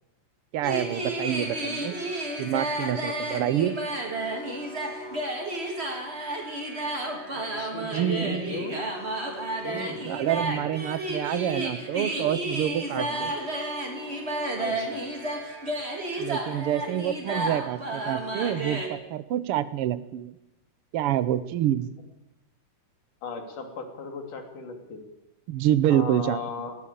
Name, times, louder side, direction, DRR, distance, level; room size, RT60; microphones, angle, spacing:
voice 1, 0.5-1.9 2.4-3.7 7.9-8.7 10.0-13.3 16.2-20.3 20.9-21.9 25.5-26.7, right 11 dB, 80° right, 15 dB, 1.2 m, -27 dB
sound 1, 0.6-18.9, right 1 dB, 20° right, 3.3 m, -32 dB
voice 2, 7.3-8.9 9.6-10.6 12.9-13.3 14.6-15.0 17.3-17.6 23.2-25.0 25.9-26.8, left 4 dB, 70° left, 5 dB, 4.3 m, -37 dB
19.0 x 18.0 x 8.7 m, 0.90 s
omnidirectional pair, 3.8 m